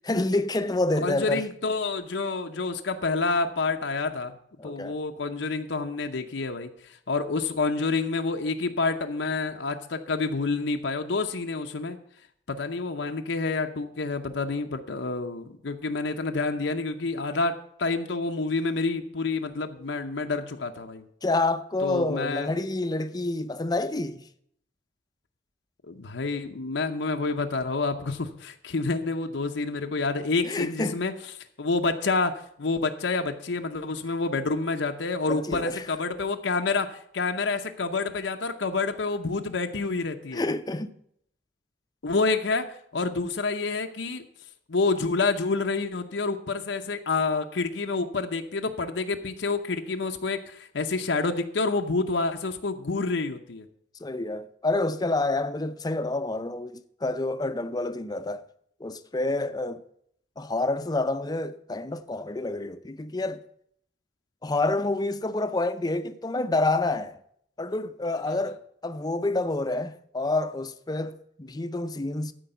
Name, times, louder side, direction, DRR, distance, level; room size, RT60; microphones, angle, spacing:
voice 1, 0.0-1.4 4.6-5.0 21.2-24.2 30.4-31.0 35.3-35.9 40.3-40.9 54.0-58.5 58.8-59.8 60.4-63.4 64.4-67.2 67.6-72.3, left 2 dB, 20° left, 0.5 m, -28 dB
voice 2, 1.0-4.3 4.6-12.0 12.5-21.0 21.8-22.5 25.8-31.1 31.6-40.4 42.0-44.3 44.7-53.7 68.3-68.4, left 3 dB, 90° left, 0.8 m, -28 dB
13.0 x 4.7 x 7.9 m
head